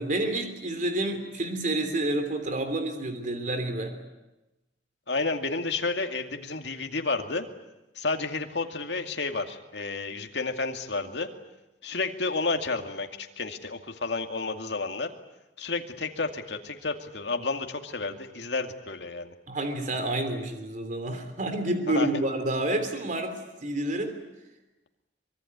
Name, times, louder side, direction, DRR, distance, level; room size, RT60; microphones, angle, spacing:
voice 1, 0.0-3.9 19.5-24.2, right 1 dB, 45° right, 7 dB, 3.1 m, -29 dB
voice 2, 5.1-7.5 8.0-11.3 11.8-15.1 15.6-19.3 21.9-22.1, left 3 dB, 70° left, 5 dB, 2.3 m, -31 dB
24.0 x 23.5 x 9.6 m, 1.0 s
head